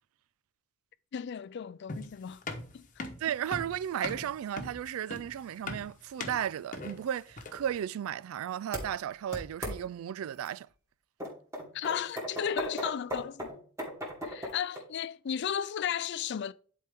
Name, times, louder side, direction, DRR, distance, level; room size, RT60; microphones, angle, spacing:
voice 1, 1.1-2.4 2.7-3.1 11.7-13.5 14.2-16.5, left 8 dB, 55° left, 0.4 m, -34 dB
sound 1, 1.9-7.7, left 2 dB, 40° left, 1.0 m, -40 dB
voice 2, 3.2-10.7, right 10 dB, 80° right, 0.3 m, -34 dB
sound 2, 8.7-8.8 9.3-9.8 10.5-10.6 11.2-14.8, equal, 15° right, 2.4 m, -36 dB
10.5 x 4.4 x 3.5 m
head